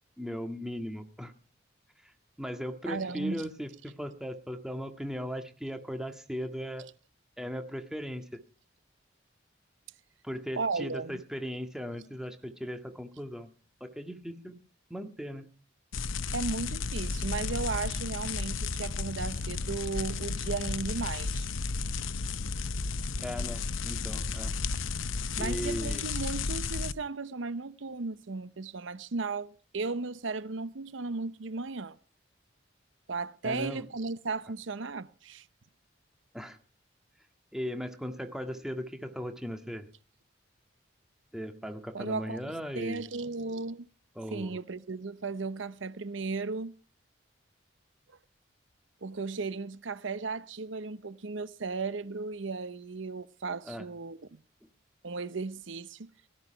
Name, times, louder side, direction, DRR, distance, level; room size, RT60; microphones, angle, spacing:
voice 1, 0.2-1.3 2.0-2.1 2.4-6.8 7.4-8.4 10.2-13.5 13.8-14.6 14.9-15.5 23.2-24.5 25.4-26.0 33.4-33.8 36.3-36.6 37.5-39.9 41.3-43.0 44.2-44.6 53.7-53.9, equal, 5° right, 1.7 m, -37 dB
voice 2, 2.9-3.5 10.6-11.2 16.3-21.5 25.4-32.0 33.1-35.5 41.9-42.4 42.8-43.9 44.3-46.7 49.0-54.4 55.0-56.1, right 4 dB, 80° right, 0.8 m, -35 dB
sound 1, 15.9-26.9, left 4 dB, 90° left, 0.8 m, -33 dB
17.5 x 13.0 x 5.7 m
head